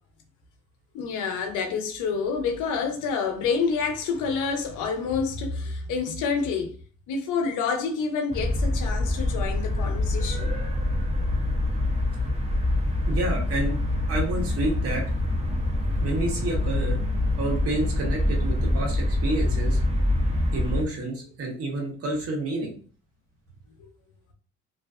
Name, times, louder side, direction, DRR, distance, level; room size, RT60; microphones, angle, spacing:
voice 1, 0.9-6.7 7.1-10.5, left 5 dB, 85° left, 0.6 m, -28 dB
sound 1, 8.3-20.8, left 1 dB, 20° right, 0.5 m, -25 dB
voice 2, 13.1-13.7 14.1-15.0 16.0-17.0 17.4-19.8 20.5-22.7, right 2 dB, 50° right, 0.9 m, -29 dB
2.4 x 2.3 x 2.3 m
cardioid pair, 90°, 30 cm